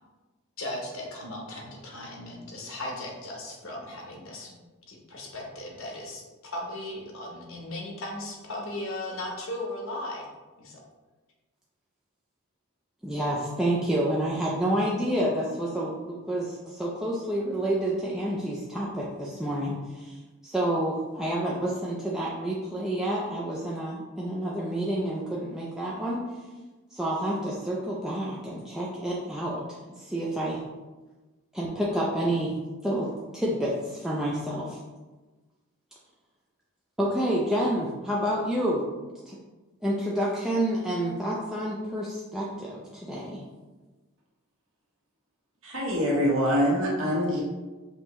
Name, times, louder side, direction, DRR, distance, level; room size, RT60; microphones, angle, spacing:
voice 1, 0.6-4.6 4.9-10.3 10.6-10.8, left 1 dB, 65° left, 0 dB, 1.0 m, -37 dB
voice 2, 13.0-26.2 26.9-30.6 31.5-32.5 32.8-34.8 37.0-38.9 39.3-39.4 39.8-43.4, right 1 dB, ahead, -6 dB, 0.4 m, -29 dB
voice 3, 45.6-47.4, equal, 65° right, -5 dB, 1.3 m, -24 dB
5.3 x 2.8 x 3.0 m, 1.2 s
head